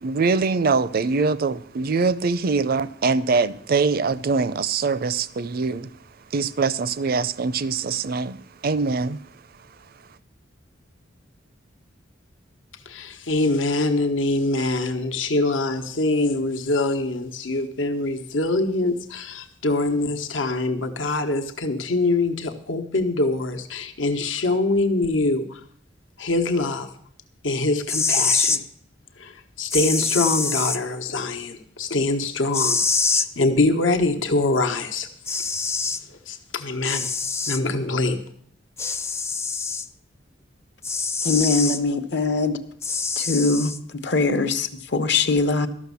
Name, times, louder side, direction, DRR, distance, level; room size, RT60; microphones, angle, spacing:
voice 1, 0.0-5.9 6.3-9.2, right 4 dB, 50° right, 0.5 m, -23 dB
voice 2, 12.9-25.6 26.2-26.9 27.4-28.6 29.2-32.8 33.1-35.1 36.1-37.1 37.5-38.2, left 2 dB, 80° left, 1.1 m, -24 dB
sound 1, 27.9-28.6 29.7-30.8 32.5-33.3 34.8-34.9 35.3-36.0 36.8-37.6 38.8-39.9 40.8-41.8 42.8-43.8, left 4 dB, 15° left, 0.4 m, -24 dB
voice 3, 41.2-42.6 43.2-43.7 44.0-45.7, left 3 dB, 65° left, 1.0 m, -22 dB
13.0 x 6.3 x 8.3 m
head